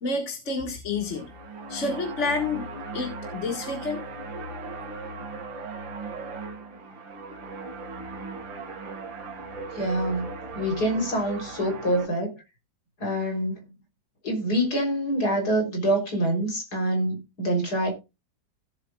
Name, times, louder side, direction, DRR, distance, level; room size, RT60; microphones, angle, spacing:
voice 1, 0.0-1.3 1.7-4.0, left 3 dB, 40° left, 2.1 m, -29 dB
sound 1, 1.0-12.1, right 3 dB, 85° right, 2.5 m, -38 dB
voice 2, 9.7-12.4 13.0-13.7 14.2-17.9, right 1 dB, 55° left, 4.2 m, -26 dB
17.0 x 7.5 x 2.4 m
omnidirectional pair, 2.0 m